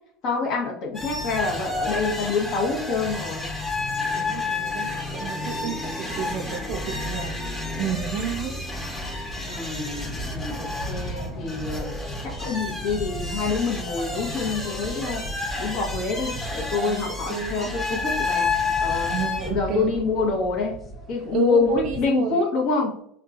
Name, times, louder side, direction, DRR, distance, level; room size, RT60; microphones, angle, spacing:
voice 1, 0.2-3.5 9.5-11.9 12.2-15.3 15.6-18.5 18.8-19.1 19.5-20.8 21.1-23.0, left 4 dB, 60° left, 0 dB, 0.9 m, -26 dB
playground carrousel, 0.9-19.5, left 3 dB, 20° left, 1.1 m, -30 dB
voice 2, 4.2-8.6 10.6-10.8 16.9-18.0 19.1-20.1 21.1-22.5, right 7 dB, 60° right, 2 dB, 0.3 m, -31 dB
sound 1, 5.8-22.1, equal, 35° left, 0.6 m, -38 dB
3.5 x 2.3 x 2.4 m, 0.72 s
supercardioid pair, 95°, 0 cm